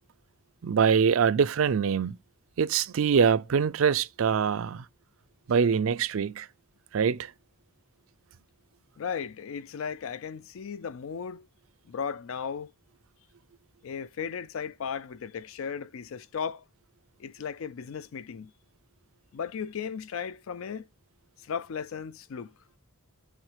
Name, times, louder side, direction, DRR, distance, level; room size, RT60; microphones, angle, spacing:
voice 1, 0.6-2.2 2.6-4.8 5.5-6.5 6.9-7.3, right 6 dB, 60° right, 0.4 m, -24 dB
voice 2, 9.0-11.5 11.9-12.7 13.8-16.6 17.2-18.5 19.3-20.9 21.4-22.5, left 6 dB, 60° left, 0.4 m, -36 dB
9.0 x 3.7 x 4.9 m
head